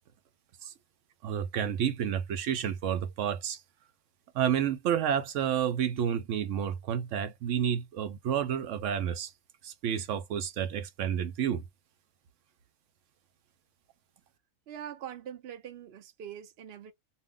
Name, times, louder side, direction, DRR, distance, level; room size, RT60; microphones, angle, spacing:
voice 1, 1.2-3.6 4.3-9.3 9.6-11.6, right 9 dB, 90° right, 1.0 m, -30 dB
voice 2, 14.7-16.9, right 9 dB, 60° right, 0.9 m, -43 dB
2.7 x 2.0 x 3.6 m
omnidirectional pair, 1.3 m